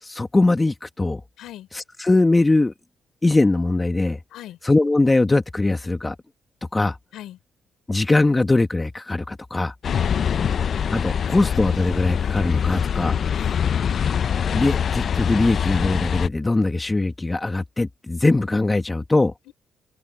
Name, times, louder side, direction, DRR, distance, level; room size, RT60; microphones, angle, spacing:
voice 1, 0.0-1.2 1.7-2.7 3.2-4.2 4.6-6.1 6.7-7.0 7.9-9.7 10.9-13.2 14.5-19.3, left 2 dB, 15° left, 1.4 m, -21 dB
voice 2, 1.4-1.7 4.3-4.6 7.1-7.4 9.9-10.4 13.3-13.7 19.5-19.6, left 13 dB, 80° left, 3.7 m, -39 dB
sound 1, 9.8-16.3, left 8 dB, 55° left, 0.4 m, -24 dB
open air
cardioid pair, 90°, 0 cm